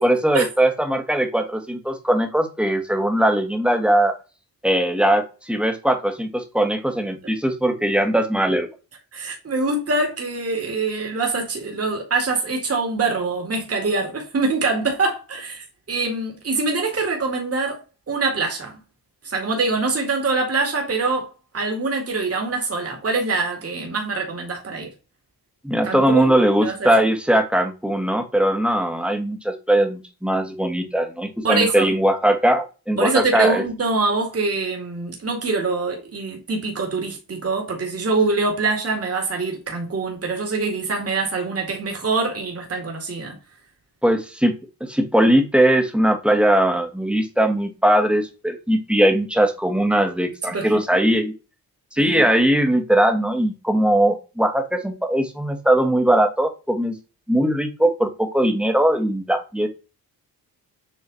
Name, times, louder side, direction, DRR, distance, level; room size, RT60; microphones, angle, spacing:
voice 1, 0.0-4.1 4.6-8.7 25.6-33.6 44.0-44.5 44.8-51.3 51.9-57.0 57.3-59.7, right 1 dB, 5° right, 1.4 m, -20 dB
voice 2, 9.1-17.8 18.1-18.8 19.2-21.3 21.5-24.9 25.8-26.4 26.6-27.0 31.4-31.9 33.0-43.4 50.5-50.8 52.0-52.3, right 3 dB, 35° right, 2.1 m, -24 dB
7.5 x 3.2 x 4.0 m
cardioid pair, 90°, 40 cm